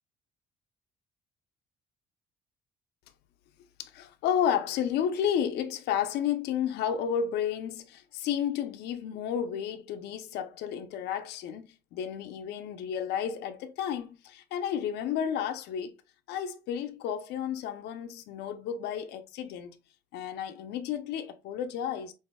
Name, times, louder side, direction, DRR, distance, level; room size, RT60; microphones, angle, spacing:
voice 1, 3.8-15.9 16.3-19.7 20.1-22.1, left 8 dB, 80° left, 0.6 m, -32 dB
5.4 x 2.6 x 2.2 m
cardioid pair, 110°, 17 cm